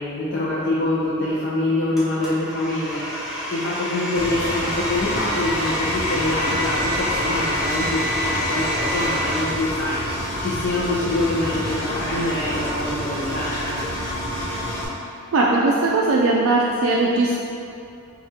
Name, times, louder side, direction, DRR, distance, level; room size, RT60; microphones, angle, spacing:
voice 1, 0.0-3.0 3.5-10.0 10.4-13.8, left 2 dB, 50° left, -9 dB, 0.6 m, -25 dB
Domestic sounds home sounds, 2.0-9.4, equal, ahead, 0.6 m, -27 dB
Engine, 4.1-14.9, equal, 70° left, 0.9 m, -29 dB
voice 2, 15.3-17.4, right 2 dB, 70° right, -4 dB, 0.3 m, -19 dB
4.7 x 2.4 x 2.8 m, 2.6 s
head